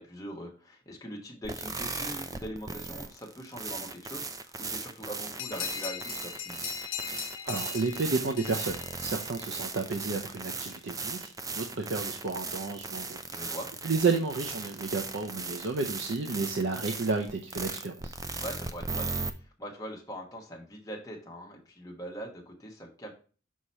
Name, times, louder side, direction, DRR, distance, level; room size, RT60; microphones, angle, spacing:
voice 1, 0.0-6.6 13.3-13.7 16.3-16.4 18.4-23.1, right 1 dB, 15° left, 0 dB, 1.2 m, -42 dB
sound 1, 1.4-19.3, right 4 dB, 15° right, 0.3 m, -37 dB
sound 2, 5.4-9.6, left 9 dB, 70° left, 0.6 m, -39 dB
voice 2, 7.4-13.6 13.8-18.1, right 4 dB, 60° right, 4 dB, 0.6 m, -32 dB
6.4 x 2.9 x 5.4 m, 0.37 s
head